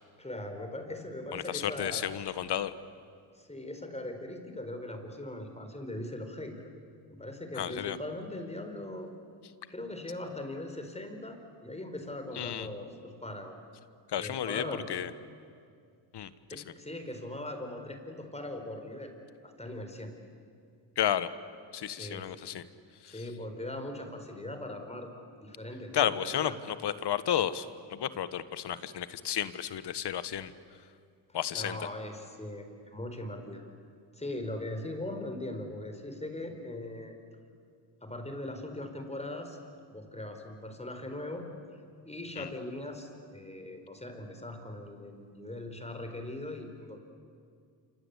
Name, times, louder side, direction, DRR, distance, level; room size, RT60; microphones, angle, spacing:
voice 1, 0.2-2.0 3.3-6.7 7.1-9.1 9.7-13.6 14.2-14.8 16.5-19.1 19.4-20.1 22.0-22.3 23.1-25.1 25.4-26.1 26.4-26.6 31.3-33.6 34.1-37.2 38.0-39.6 39.9-41.5 42.0-47.0, left 1 dB, 15° left, 6 dB, 4.5 m, -40 dB
voice 2, 1.3-2.7 7.5-8.0 12.3-12.7 14.1-15.1 16.1-16.6 21.0-21.3 21.7-22.7 23.0-23.2 25.9-30.5 31.3-31.9 42.4-42.5, left 10 dB, 65° left, 14 dB, 1.4 m, -32 dB
27.5 x 26.0 x 8.3 m, 2.2 s
cardioid pair, 75°, 44 cm